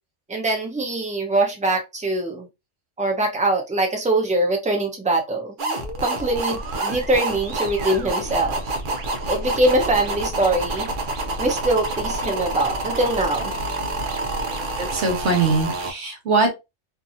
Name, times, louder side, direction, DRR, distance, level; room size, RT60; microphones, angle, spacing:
voice 1, 0.3-2.5 3.0-5.5 6.0-8.6 9.3-10.9 11.4-13.5, right 2 dB, 10° right, 2 dB, 0.4 m, -22 dB
sound 1, 5.6-15.9, right 2 dB, 50° right, 0.7 m, -28 dB
voice 2, 14.8-16.5, right 3 dB, 65° right, 1 dB, 1.1 m, -21 dB
2.7 x 2.6 x 2.6 m, 0.23 s
omnidirectional pair, 1.3 m